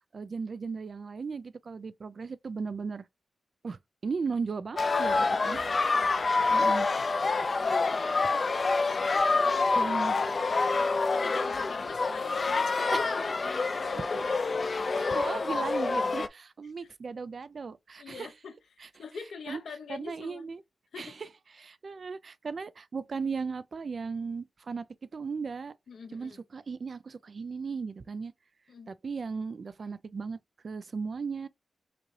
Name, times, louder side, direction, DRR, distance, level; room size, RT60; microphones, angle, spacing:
voice 1, 0.1-3.1 3.6-5.6 6.5-6.9 9.8-10.2 12.9-13.1 13.9-14.4 14.9-18.3 18.8-18.9 19.5-19.6 19.9-20.6 21.0-21.3 21.6-24.9 25.1-25.7 26.1-28.3 28.9-30.4 30.6-31.5, right 5 dB, 60° right, 0.4 m, -36 dB
sound 1, 4.8-16.3, left 3 dB, 50° left, 0.5 m, -27 dB
voice 2, 5.1-6.1 7.6-8.5 8.9-10.7 11.1-13.2 13.8-14.4 14.8-15.3 18.0-18.5 19.0-20.5 20.9-21.2 25.9-26.4 28.7-28.9, left 5 dB, 80° left, 0.8 m, -44 dB
5.0 x 2.8 x 3.1 m
cardioid pair, 55°, 0 cm